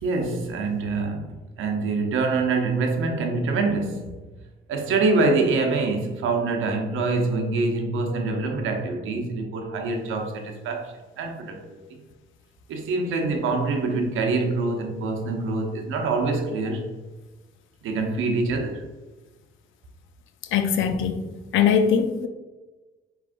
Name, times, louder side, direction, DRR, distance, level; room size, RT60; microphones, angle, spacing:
voice 1, 0.0-4.1 4.7-12.0 12.7-16.9 17.8-18.8, right 3 dB, 85° right, 0.7 m, -25 dB
voice 2, 20.5-22.3, left 7 dB, 80° left, 0.5 m, -22 dB
4.8 x 3.2 x 2.5 m
cardioid pair, 90°, 20 cm